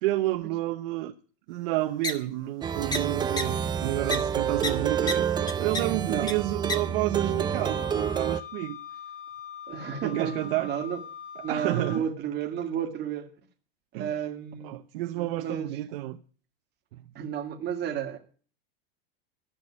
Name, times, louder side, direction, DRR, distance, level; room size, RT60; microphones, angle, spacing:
voice 1, 0.0-1.1 1.5-8.8 10.0-10.7 11.5-12.1 13.9-14.1 14.6-16.2 16.9-17.0, right 16 dB, 70° right, 0.8 m, -30 dB
sound 1, 2.0-2.1 2.9-3.0 3.4-3.5 4.1-4.2 4.6-4.7 5.1-5.2 5.5-5.8 6.3-6.4 6.7-6.8, left 2 dB, 15° left, 1.2 m, -27 dB
Plucked string instrument, 2.6-8.4, right 8 dB, 15° right, 0.5 m, -28 dB
Wind instrument woodwind instrument, 7.5-12.0, left 7 dB, 85° left, 5.5 m, -42 dB
voice 2, 9.7-11.0 11.4-13.3 13.9-14.8 15.1-15.7 17.2-18.2, right 8 dB, 35° right, 1.9 m, -32 dB
12.5 x 6.3 x 8.7 m
supercardioid pair, 135°, 30 cm